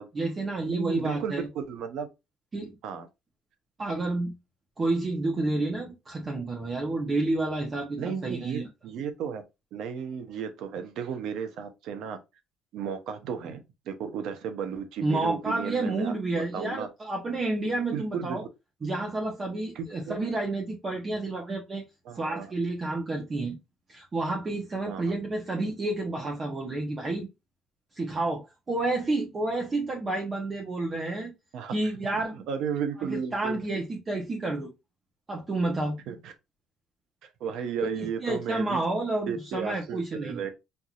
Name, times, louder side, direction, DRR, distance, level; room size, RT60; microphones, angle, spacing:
voice 1, 0.1-1.5 2.5-2.8 3.8-4.3 4.8-8.7 15.0-18.4 18.8-21.8 22.2-23.6 23.9-27.3 27.9-31.3 31.7-32.4 33.0-34.7 35.3-36.0 38.0-40.4, right 2 dB, 30° right, 0.9 m, -30 dB
voice 2, 0.7-2.1 2.8-3.1 8.0-9.4 9.7-12.2 12.7-13.6 13.9-16.1 16.5-16.9 17.9-18.5 19.0-19.1 19.7-20.2 22.1-22.5 24.9-25.1 31.5-31.9 32.3-33.6 36.1-36.3 37.4-38.8 39.3-40.6, right 7 dB, 70° right, 0.9 m, -34 dB
4.5 x 2.7 x 2.4 m
cardioid pair, 120°, 0 cm